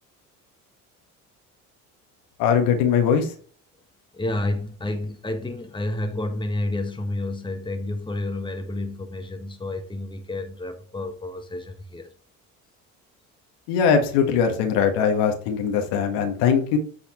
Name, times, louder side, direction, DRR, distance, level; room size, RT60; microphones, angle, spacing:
voice 1, 2.4-3.3 13.7-16.8, left 7 dB, 70° left, 1.6 m, -21 dB
voice 2, 4.1-12.1, left 2 dB, 10° left, 1.4 m, -30 dB
8.5 x 4.2 x 4.3 m
hypercardioid pair, 60°, 42 cm